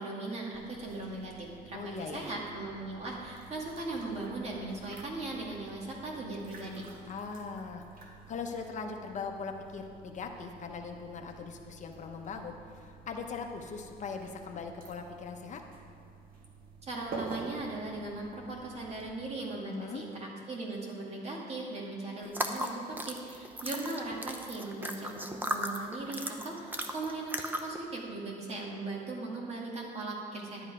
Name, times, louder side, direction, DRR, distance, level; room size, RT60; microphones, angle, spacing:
voice 1, 0.0-6.8 16.8-30.6, right 2 dB, 40° right, -2 dB, 2.2 m, -38 dB
sound 1, 0.5-19.1, right 4 dB, 55° right, 1.5 m, -50 dB
voice 2, 1.7-2.2 7.1-15.6 19.6-20.0, left 5 dB, 45° left, 4 dB, 0.8 m, -40 dB
sound 2, 22.3-27.8, right 1 dB, 10° right, 0.7 m, -36 dB
11.0 x 8.0 x 4.9 m, 2.5 s
cardioid pair, 110°, 17 cm